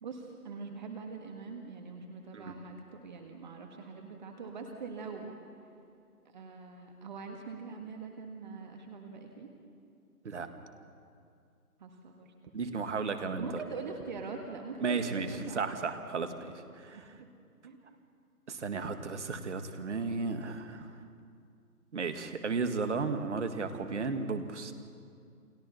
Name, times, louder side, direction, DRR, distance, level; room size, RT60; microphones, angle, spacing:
voice 1, 0.0-5.3 6.2-9.5 11.8-12.3 13.4-15.6 16.1-16.2 16.9-17.0 17.6-17.8, right 4 dB, 30° right, 3 dB, 1.7 m, -43 dB
voice 2, 12.5-13.6 14.8-15.3 15.5-17.0 18.5-20.9 21.9-24.7, right 4 dB, 50° right, 8 dB, 1.9 m, -34 dB
29.0 x 25.0 x 4.2 m, 2.4 s
figure-of-eight pair, 145°, 45 cm